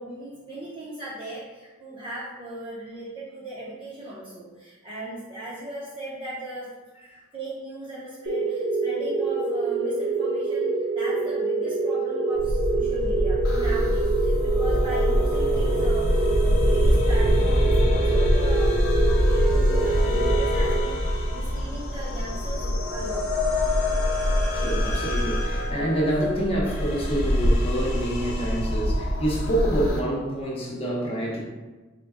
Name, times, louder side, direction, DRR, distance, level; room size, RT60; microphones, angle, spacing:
voice 1, 0.0-6.7 7.3-18.7 19.3-23.2, right 1 dB, 25° right, -9 dB, 0.7 m, -38 dB
sound 1, 8.3-21.4, right 3 dB, 70° right, 1.0 m, -26 dB
sound 2, 12.3-29.9, equal, 50° left, 0.5 m, -24 dB
sound 3, 13.4-30.0, left 4 dB, 90° left, 0.7 m, -34 dB
voice 2, 24.5-31.4, right 1 dB, 25° left, -4 dB, 0.8 m, -27 dB
3.8 x 2.2 x 3.5 m, 1.2 s
head